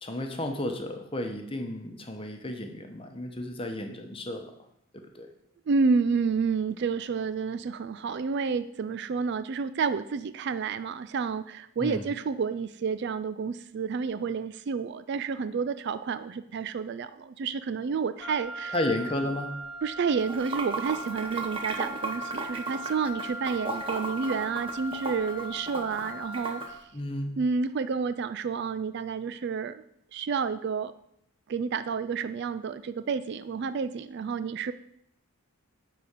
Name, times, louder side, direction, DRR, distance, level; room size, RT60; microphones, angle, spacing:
voice 1, 0.0-4.5 5.1-5.3 11.8-12.0 18.7-19.5 26.9-27.4, left 1 dB, 25° left, 4 dB, 1.0 m, -32 dB
voice 2, 5.7-18.7 19.8-26.8 27.4-29.8 30.1-30.9 31.5-34.7, right 5 dB, 50° right, 13 dB, 0.3 m, -30 dB
Wind instrument woodwind instrument, 18.2-26.9, equal, ahead, 1.2 m, -39 dB
Water / Sink (filling or washing), 20.2-26.7, right 3 dB, 25° right, 0.9 m, -35 dB
10.0 x 4.2 x 6.6 m, 0.77 s
head